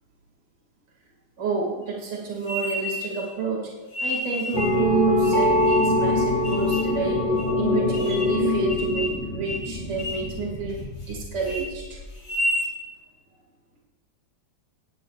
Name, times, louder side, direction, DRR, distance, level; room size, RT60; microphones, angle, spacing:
voice 1, 1.4-3.7 4.0-7.3 7.5-12.0, right 4 dB, 70° right, -1 dB, 2.8 m, -29 dB
sound 1, 2.4-3.3 3.9-4.7 5.2-6.0 6.4-6.9 7.4-7.5 7.9-8.4 8.7-9.2 9.5-9.7 10.0-10.3 10.7-11.1 11.4-11.6 12.1-12.7, left 1 dB, 60° left, 4.3 m, -31 dB
sound 2, 4.5-12.1, left 2 dB, 25° left, 1.8 m, -24 dB
18.0 x 15.5 x 2.4 m, 1.3 s
omnidirectional pair, 2.0 m